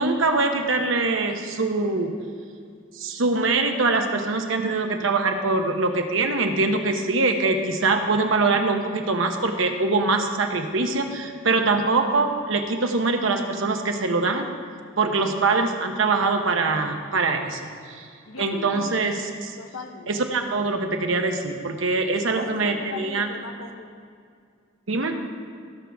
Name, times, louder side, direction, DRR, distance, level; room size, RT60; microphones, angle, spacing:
voice 1, 0.0-2.1 2.9-14.5 15.0-18.1 18.4-19.6 20.1-23.3 24.9-25.2, right 3 dB, 70° right, 4 dB, 0.9 m, -23 dB
voice 2, 18.3-18.9 19.6-20.1 22.3-24.0, left 4 dB, 75° left, 6 dB, 0.9 m, -38 dB
16.0 x 6.3 x 3.5 m, 2.2 s
head